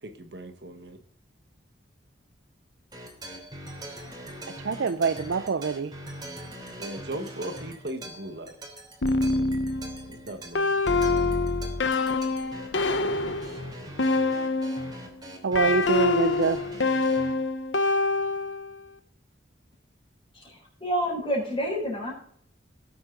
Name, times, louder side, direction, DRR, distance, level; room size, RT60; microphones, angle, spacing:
voice 1, 0.0-1.0 6.8-8.6 10.1-11.2, right 1 dB, 60° right, 1.4 m, -38 dB
sound 1, 2.9-17.3, right 1 dB, 20° right, 3.1 m, -43 dB
voice 2, 4.6-5.9 15.4-16.7, right 4 dB, 80° right, 0.5 m, -25 dB
sound 2, 9.0-15.0 15.5-18.8, left 3 dB, 80° left, 1.1 m, -26 dB
voice 3, 20.3-22.1, equal, 25° left, 4.5 m, -29 dB
18.5 x 8.5 x 3.8 m
head